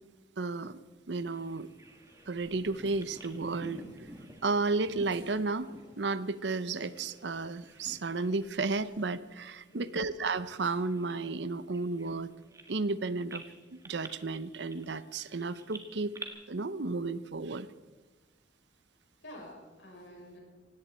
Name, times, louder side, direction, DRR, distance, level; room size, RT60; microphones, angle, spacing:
voice 1, 0.4-0.8 1.1-1.7 2.3-4.1 4.4-12.3 12.7-13.4 13.7-16.2 16.5-17.7, right 3 dB, 70° right, 16 dB, 0.7 m, -33 dB
Bird vocalization bird call bird song, 1.3-7.2 7.5-8.4 8.7-8.9 9.5-13.0 13.3-16.3, right 2 dB, 15° right, 1.6 m, -50 dB
sound 1, 1.8-7.3, equal, 35° left, 5.9 m, -62 dB
sound 2, 2.1-5.8 6.2-6.6 6.9-9.5 10.2-10.9 11.8-12.1, left 1 dB, 10° left, 6.3 m, -65 dB
voice 2, 9.7-10.0 19.2-20.4, equal, 85° left, -2 dB, 6.4 m, -48 dB
18.5 x 16.5 x 4.3 m, 1.2 s
head